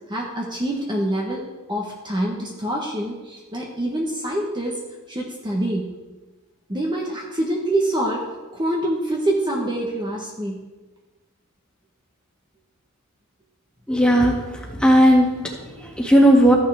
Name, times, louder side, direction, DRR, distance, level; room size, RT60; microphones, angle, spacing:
voice 1, 0.1-1.4 1.7-4.8 5.1-5.9 6.7-8.2 8.5-10.7, right 1 dB, 20° right, -2 dB, 1.3 m, -25 dB
voice 2, 13.9-16.5, equal, 5° left, -2 dB, 1.9 m, -16 dB
14.5 x 9.8 x 3.6 m, 1.2 s
head